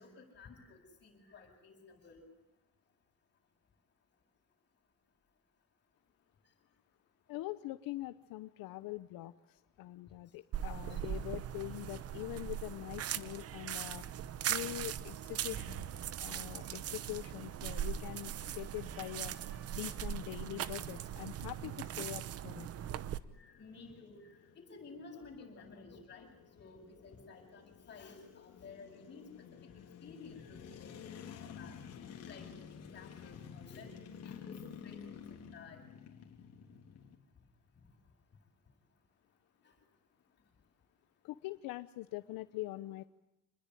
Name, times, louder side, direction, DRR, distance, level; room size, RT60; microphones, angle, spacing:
voice 1, 0.0-2.2 9.2-9.3 10.9-11.0 21.4-21.5 23.4-26.3 26.6-29.7 30.0-31.8 32.2-35.8 39.6-39.7, left 4 dB, 30° left, 1 dB, 7.8 m, -54 dB
voice 2, 7.3-14.1 14.5-15.9 16.2-22.7 41.2-43.0, left 17 dB, 85° left, 12 dB, 1.0 m, -43 dB
sound 1, 10.5-23.2, right 10 dB, 45° right, 0.9 m, -40 dB
sound 2, 15.5-20.5, right 3 dB, 90° right, 4.7 m, -64 dB
sound 3, 22.3-37.2, left 7 dB, 50° left, 3.5 m, -52 dB
28.0 x 20.5 x 10.0 m, 0.89 s
cardioid pair, 170°, 34 cm